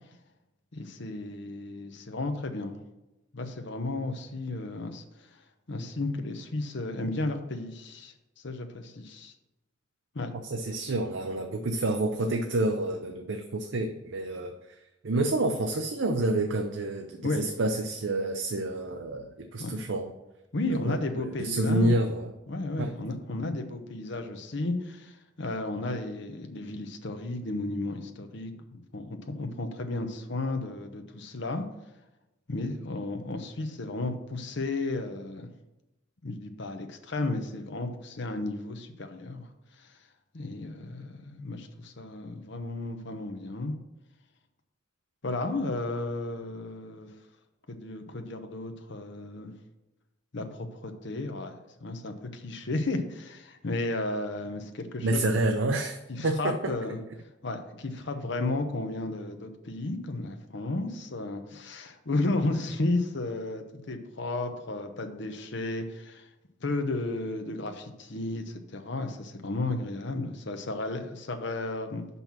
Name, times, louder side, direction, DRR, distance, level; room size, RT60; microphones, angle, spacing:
voice 1, 0.7-2.8 3.3-9.3 10.1-10.3 17.2-17.5 19.6-19.8 20.5-22.0 22.5-31.7 32.5-35.5 36.2-40.0 40.3-43.8 45.2-47.1 47.7-49.5 50.3-55.2 56.1-57.0 57.4-66.3 66.6-72.1, left 2 dB, 60° left, 6 dB, 0.9 m, -33 dB
voice 2, 10.4-14.8 15.0-20.1 20.7-22.3 22.8-23.0 55.0-56.7, right 2 dB, 65° right, 5 dB, 0.6 m, -29 dB
5.9 x 5.5 x 6.0 m, 0.96 s
head